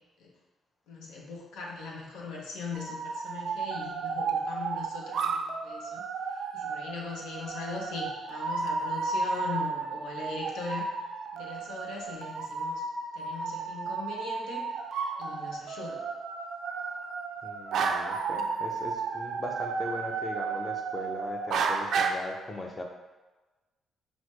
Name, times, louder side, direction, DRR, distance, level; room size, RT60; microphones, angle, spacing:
voice 1, 0.9-6.0 6.5-10.9 11.3-12.8 13.2-14.7 15.2-16.0, left 4 dB, 85° left, -2 dB, 0.7 m, -40 dB
sound 1, 2.7-22.1, right 5 dB, 70° right, 0.3 m, -33 dB
voice 2, 17.4-22.8, left 2 dB, 30° left, 2 dB, 0.6 m, -39 dB
6.1 x 2.1 x 3.1 m, 1.2 s
cardioid pair, 90°, 0 cm